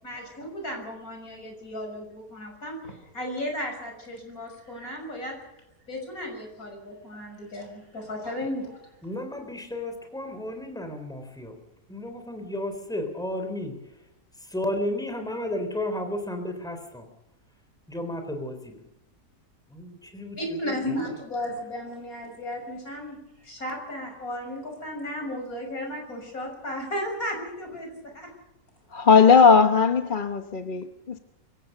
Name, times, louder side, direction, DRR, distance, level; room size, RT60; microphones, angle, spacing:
voice 1, 0.0-5.6 5.9-8.9 20.4-23.2 23.4-28.3, left 1 dB, 65° left, 6.7 m, -34 dB
voice 2, 9.0-11.6 11.9-13.8 14.4-17.1 17.9-18.8 19.7-20.7, left 1 dB, ahead, 3.6 m, -33 dB
voice 3, 28.9-31.2, left 5 dB, 40° left, 1.0 m, -18 dB
25.0 x 15.5 x 6.7 m
omnidirectional pair, 1.6 m